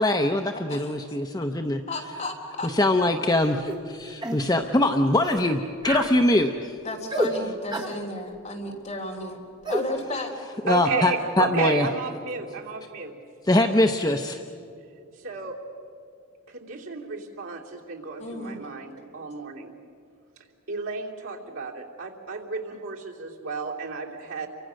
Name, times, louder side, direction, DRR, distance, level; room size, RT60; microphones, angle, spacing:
voice 1, 0.0-1.8 2.8-6.8 10.6-11.9 13.5-14.4, left 1 dB, 20° left, 5 dB, 0.7 m, -23 dB
voice 2, 0.5-0.9 1.4-1.5 1.9-2.7 6.8-10.3 18.2-18.6, left 2 dB, 35° left, 0 dB, 3.6 m, -34 dB
sound 1, 3.7-3.8 4.2-4.4 5.2-5.5 5.8-6.2 7.1-7.3 7.7-8.0 9.6-9.9, right 1 dB, 20° right, 1.6 m, -28 dB
voice 3, 10.7-13.1 15.2-15.6 16.5-19.7 20.7-24.5, right 4 dB, 75° right, -1 dB, 3.1 m, -32 dB
29.5 x 24.5 x 6.4 m, 2.5 s
head